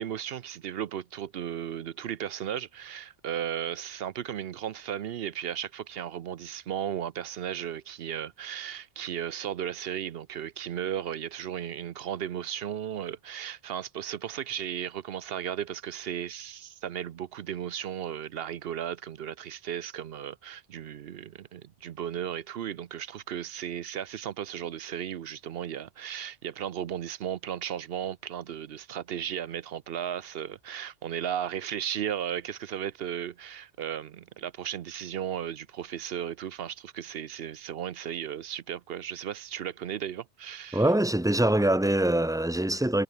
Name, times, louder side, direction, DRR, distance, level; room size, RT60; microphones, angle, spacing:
voice 1, 0.0-40.9, right 9 dB, 60° right, 0.8 m, -35 dB
voice 2, 40.7-43.0, right 1 dB, 5° right, 0.6 m, -24 dB
omnidirectional pair, 1.2 m